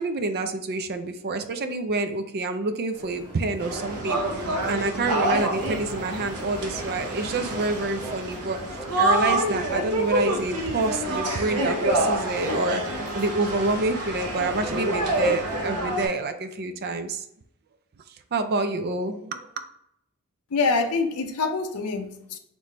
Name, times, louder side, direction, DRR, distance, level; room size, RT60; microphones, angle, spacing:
voice 1, 0.0-8.6 9.0-17.3 18.1-19.5, right 3 dB, 45° right, 8 dB, 0.4 m, -28 dB
sound 1, 2.9-15.7, equal, 20° right, 1.3 m, -44 dB
sound 2, 3.6-16.1, right 1 dB, 75° right, 0.9 m, -27 dB
voice 2, 20.5-22.4, left 4 dB, 80° left, 5 dB, 0.5 m, -25 dB
4.0 x 3.1 x 3.3 m, 0.76 s
head